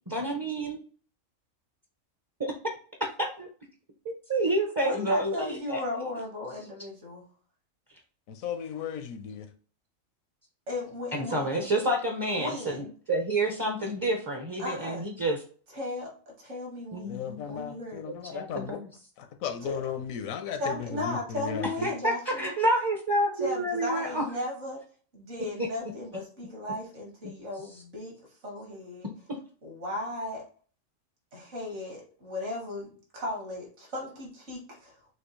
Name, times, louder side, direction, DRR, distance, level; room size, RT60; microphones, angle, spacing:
voice 1, 0.1-0.8 2.4-2.5 3.2-3.5 4.0-5.8 11.1-15.4 16.9-17.4 18.3-18.9 21.8-24.2 29.3-29.4, right 1 dB, 25° right, 1 dB, 0.5 m, -29 dB
voice 2, 4.8-7.2 10.7-11.7 12.4-12.9 14.6-15.0 15.7-18.0 19.6-19.7 20.6-22.5 23.4-24.8 25.1-28.1 28.4-29.1 29.6-30.5 31.3-34.9, left 2 dB, 60° right, -1 dB, 2.0 m, -36 dB
voice 3, 8.3-9.5 17.1-18.8 19.2-21.9, left 7 dB, 85° left, 6 dB, 1.1 m, -36 dB
6.3 x 2.7 x 3.1 m, 0.43 s
omnidirectional pair, 1.4 m